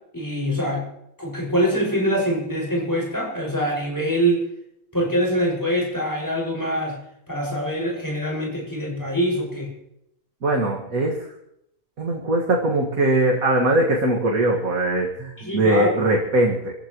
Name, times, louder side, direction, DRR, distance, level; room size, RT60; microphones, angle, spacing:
voice 1, 0.1-0.9 1.2-4.4 4.9-7.0 7.3-9.7 15.4-15.9, equal, 15° left, -2 dB, 6.2 m, -24 dB
voice 2, 10.4-11.2 12.0-16.7, right 1 dB, 75° right, -2 dB, 2.4 m, -21 dB
26.5 x 15.0 x 3.1 m, 0.78 s
omnidirectional pair, 1.5 m